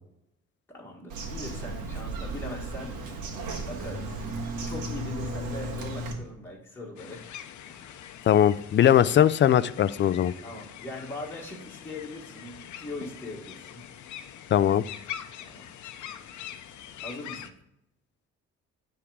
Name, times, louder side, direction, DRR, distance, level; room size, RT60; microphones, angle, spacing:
voice 1, 0.7-3.0 3.6-4.2 4.6-7.3 7.7-8.1 10.4-13.9 15.5-15.7 17.0-17.5, left 1 dB, 10° left, -3 dB, 1.7 m, -40 dB
Bird vocalization bird call bird song, 1.1-6.1, right 2 dB, 80° right, 1.6 m, -35 dB
sound 1, 7.0-17.5, left 10 dB, 70° left, 0.7 m, -43 dB
voice 2, 8.3-10.3 14.5-14.8, left 10 dB, 40° left, 16 dB, 0.4 m, -20 dB
9.9 x 3.7 x 4.9 m, 0.82 s
cardioid pair, 90°, 30 cm